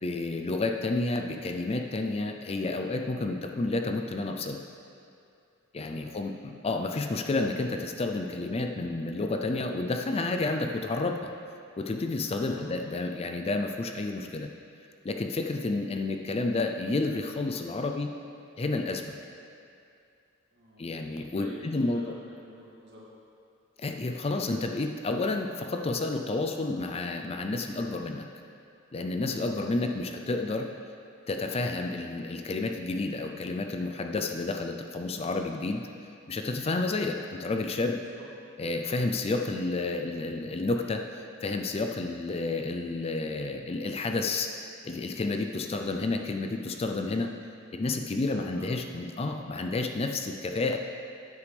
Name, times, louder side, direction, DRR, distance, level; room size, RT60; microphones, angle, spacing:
voice 1, 0.0-4.6 5.7-11.3 11.8-14.5 15.0-18.1 18.6-19.0 20.8-22.0 23.8-28.3 28.9-30.7 31.3-35.9 36.3-38.0 38.6-44.5 44.8-47.3 47.7-50.8, left 2 dB, 30° left, 4 dB, 0.4 m, -30 dB
voice 2, 5.8-6.3 12.3-12.7 20.5-20.8 21.3-23.1 38.0-38.6 48.2-48.7, equal, 55° right, -5 dB, 2.3 m, -48 dB
13.5 x 8.2 x 3.4 m, 2.5 s
head